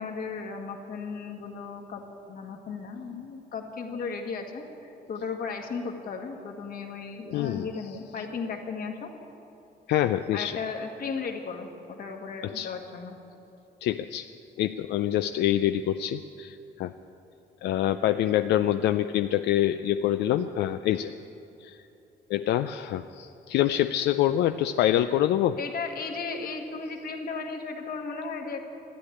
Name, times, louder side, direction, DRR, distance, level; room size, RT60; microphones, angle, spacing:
voice 1, 0.0-9.1 10.3-13.2 25.6-28.7, left 5 dB, 60° left, 3 dB, 1.8 m, -35 dB
voice 2, 7.3-7.7 9.9-10.6 12.4-12.7 13.8-14.3 14.6-16.9 17.6-21.1 21.6-21.8 22.3-25.6, left 12 dB, 90° left, 9 dB, 0.4 m, -26 dB
13.0 x 10.0 x 9.8 m, 3.0 s
cardioid pair, 105°, 17 cm